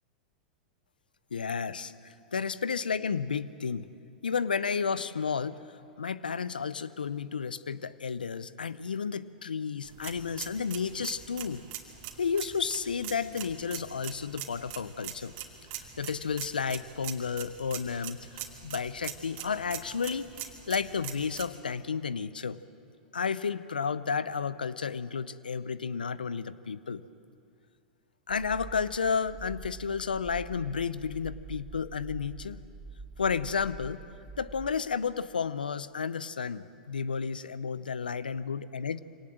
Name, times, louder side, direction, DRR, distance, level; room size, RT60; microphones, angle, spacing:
voice 1, 1.3-1.9 2.3-3.9 4.2-5.6 6.0-11.6 12.2-15.3 15.7-20.3 20.7-22.6 23.1-27.0 28.3-32.6 33.2-34.0 34.4-39.0, left 6 dB, 90° left, 17 dB, 0.6 m, -32 dB
sound 1, 9.8-21.5, right 11 dB, 45° right, 2.4 m, -43 dB
sound 2, 28.3-34.7, right 4 dB, 25° right, 1.6 m, -46 dB
24.5 x 18.5 x 7.6 m, 2.4 s
hypercardioid pair, 100°, 5 cm